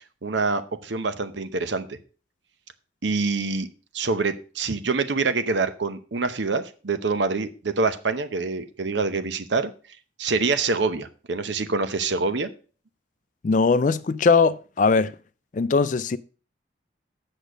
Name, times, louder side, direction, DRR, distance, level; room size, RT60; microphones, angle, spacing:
voice 1, 0.2-2.0 3.0-3.7 3.9-9.7 10.2-12.5, right 4 dB, 70° right, 0.8 m, -25 dB
voice 2, 13.4-15.1 15.5-16.2, left 4 dB, 40° left, 0.4 m, -20 dB
8.3 x 6.3 x 5.1 m
head